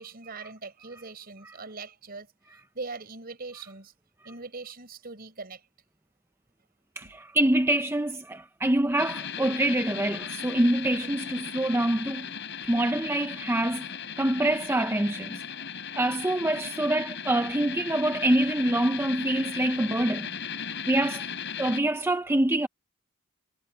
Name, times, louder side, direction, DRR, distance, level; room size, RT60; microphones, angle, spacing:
voice 1, 0.0-2.3 2.7-3.9 4.2-5.6 7.0-7.1, right 3 dB, 45° right, 4.9 m, -41 dB
voice 2, 7.0-12.3 12.6-13.9 14.2-15.4 16.0-20.3 20.9-21.3 21.6-22.7, right 1 dB, 10° right, 0.6 m, -25 dB
sound 1, 9.0-21.8, left 7 dB, 60° left, 5.5 m, -37 dB
head